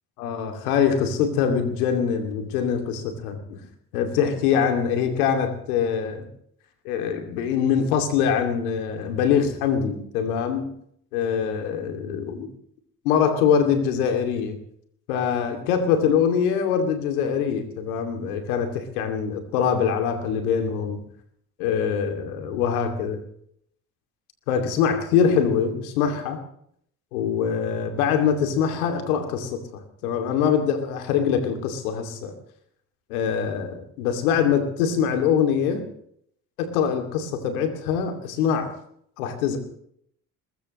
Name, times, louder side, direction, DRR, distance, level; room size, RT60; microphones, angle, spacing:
voice 1, 0.2-3.6 3.9-6.3 6.8-10.7 11.1-12.5 13.0-14.6 15.1-21.0 21.6-23.2 24.5-26.4 27.1-32.3 33.1-35.8 36.6-38.7 39.2-39.6, left 7 dB, 85° left, 6 dB, 2.7 m, -23 dB
21.5 x 20.5 x 3.1 m, 0.67 s
hypercardioid pair, 55°, 42 cm